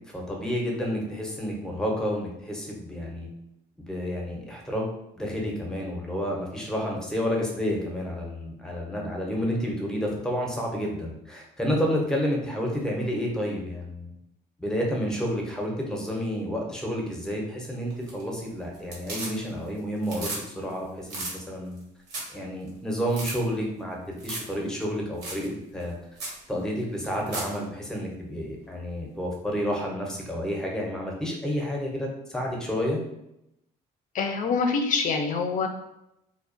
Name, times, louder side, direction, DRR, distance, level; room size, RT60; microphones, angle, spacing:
voice 1, 0.0-3.3 3.8-4.9 5.2-14.1 14.6-21.8 22.3-26.0 26.5-33.0, equal, 5° left, -1 dB, 0.6 m, -30 dB
sound 1, 17.9-18.4 18.7-19.7 20.0-20.4 20.7-20.8 21.0-21.3 21.8-21.9 22.1-22.4 22.7-22.8 23.1-23.3 24.2-24.5 24.8-24.9 25.2-25.4 25.8-25.9 26.2-26.4 27.0-27.5 29.7-29.8, right 2 dB, 90° right, 0.9 m, -35 dB
voice 2, 34.1-35.7, left 5 dB, 50° left, 5 dB, 0.4 m, -25 dB
2.3 x 2.1 x 2.5 m, 0.83 s
cardioid pair, 110°, 17 cm